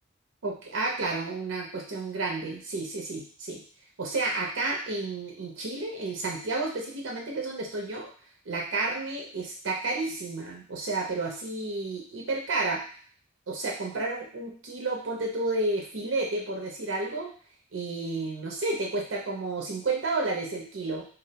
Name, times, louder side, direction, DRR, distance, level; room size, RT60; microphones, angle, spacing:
voice 1, 0.4-3.6 4.0-8.1 8.5-12.8 13.5-17.3 17.7-21.0, right 3 dB, 85° right, -1 dB, 0.6 m, -31 dB
2.4 x 2.0 x 2.8 m, 0.43 s
head